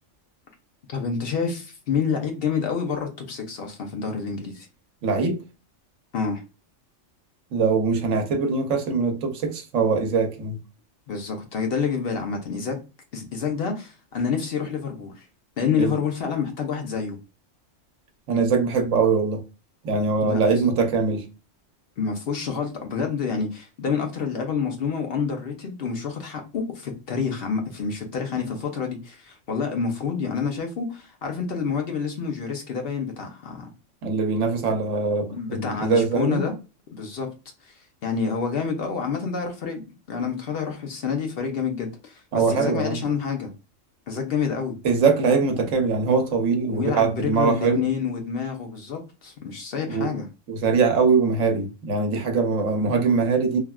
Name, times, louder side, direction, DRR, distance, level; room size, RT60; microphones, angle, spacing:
voice 1, 0.9-4.7 6.1-6.4 11.1-12.8 13.1-15.2 15.6-17.2 20.2-20.7 22.0-33.7 35.3-36.5 36.9-37.3 37.7-37.8 38.0-43.5 44.1-44.8 45.5-45.7 46.7-50.3, left 6 dB, 60° left, 0.7 m, -28 dB
voice 2, 5.0-5.4 7.5-10.6 15.8-16.0 18.3-19.4 19.8-21.2 34.0-36.4 42.3-43.0 44.8-47.8 49.9-50.1 50.5-53.6, right 4 dB, 85° right, 1.1 m, -22 dB
3.4 x 2.3 x 2.2 m
omnidirectional pair, 1.3 m